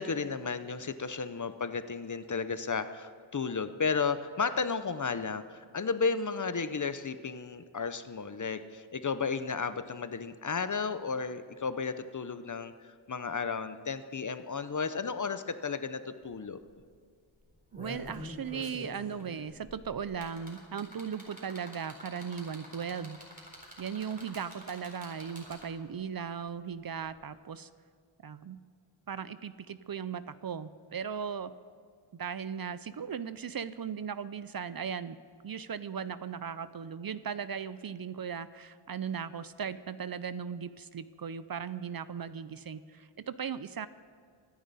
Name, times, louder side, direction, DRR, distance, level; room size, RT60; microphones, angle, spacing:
voice 1, 0.0-16.6, left 5 dB, 40° left, 11 dB, 0.7 m, -33 dB
sound 1, 16.2-16.3 16.6-16.9 17.4-25.9 27.1-27.2, left 1 dB, 15° right, 4.0 m, -47 dB
voice 2, 17.7-23.2 23.8-27.7 28.2-28.6 29.1-31.5 32.1-35.2 35.4-43.9, right 7 dB, 50° right, 14 dB, 0.5 m, -37 dB
24.0 x 10.0 x 4.1 m, 2.1 s
wide cardioid pair, 115°, 48 cm